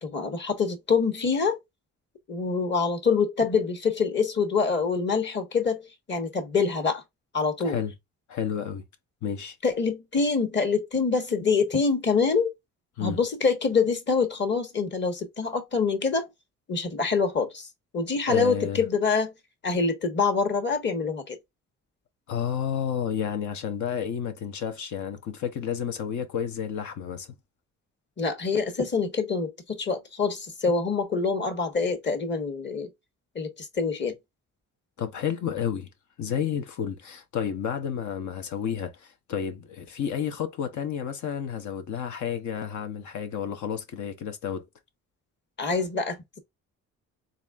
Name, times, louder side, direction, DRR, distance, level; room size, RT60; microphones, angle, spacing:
voice 1, 0.0-1.6 2.3-7.0 7.3-7.8 9.6-12.5 13.0-16.3 16.7-17.7 17.9-19.3 19.6-21.4 28.2-32.9 33.3-34.1 45.6-46.4, left 5 dB, 35° left, 1.4 m, -25 dB
voice 2, 8.3-8.8 9.2-9.6 13.0-13.2 18.3-18.8 22.3-27.3 35.0-35.9 36.2-44.7, left 8 dB, 70° left, 0.9 m, -31 dB
4.0 x 3.7 x 2.4 m
cardioid pair, 90°, 30 cm